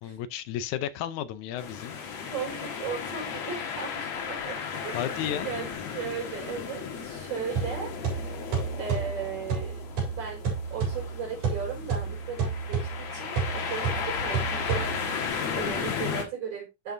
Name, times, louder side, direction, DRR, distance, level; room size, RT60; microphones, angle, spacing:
voice 1, 0.0-2.0 4.9-5.5, left 10 dB, 80° left, 2.1 m, -33 dB
sound 1, 1.6-16.2, left 6 dB, 65° left, 2.6 m, -35 dB
voice 2, 2.3-4.6 4.8-5.7 5.9-8.3 8.8-9.8 10.2-10.4 10.7-16.9, right 6 dB, 50° right, 5.4 m, -36 dB
sound 2, 7.6-15.3, right 5 dB, 80° right, 5.1 m, -31 dB
11.0 x 5.8 x 2.6 m
omnidirectional pair, 3.4 m